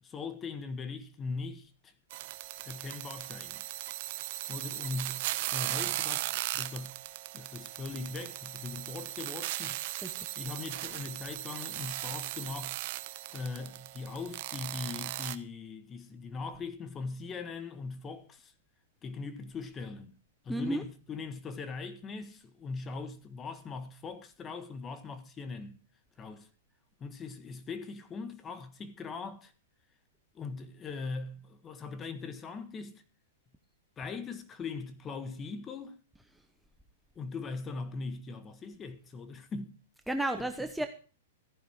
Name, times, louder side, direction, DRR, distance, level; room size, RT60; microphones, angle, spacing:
voice 1, 0.0-1.9 2.6-3.6 4.5-6.2 6.5-7.0 7.3-9.8 10.3-12.8 13.3-18.5 19.0-20.1 20.4-25.8 26.2-26.5 27.0-29.5 30.3-33.0 34.0-36.0 37.1-39.7 40.4-40.5, left 4 dB, 20° left, 1.4 m, -40 dB
sound 1, 2.1-15.3, right 16 dB, 55° right, 0.9 m, -37 dB
voice 2, 20.5-20.8 40.1-40.9, right 1 dB, ahead, 0.8 m, -32 dB
14.5 x 10.5 x 3.6 m
hypercardioid pair, 135°, 0 cm